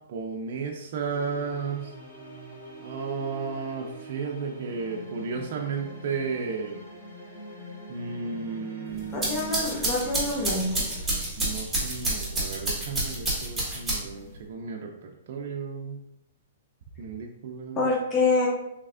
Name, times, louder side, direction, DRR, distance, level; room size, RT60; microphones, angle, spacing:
voice 1, 0.1-1.9 2.8-6.8 7.9-10.3 11.4-16.0 17.0-17.9, right 5 dB, 55° right, 0 dB, 0.4 m, -34 dB
sound 1, 1.0-11.2, left 1 dB, 65° left, 1.5 m, -45 dB
sound 2, 9.0-14.3, right 2 dB, 5° right, 1.3 m, -29 dB
voice 2, 9.1-10.9 17.8-18.5, left 3 dB, 25° left, -2 dB, 0.7 m, -26 dB
3.3 x 3.2 x 2.5 m, 0.83 s
hypercardioid pair, 145°, 0 cm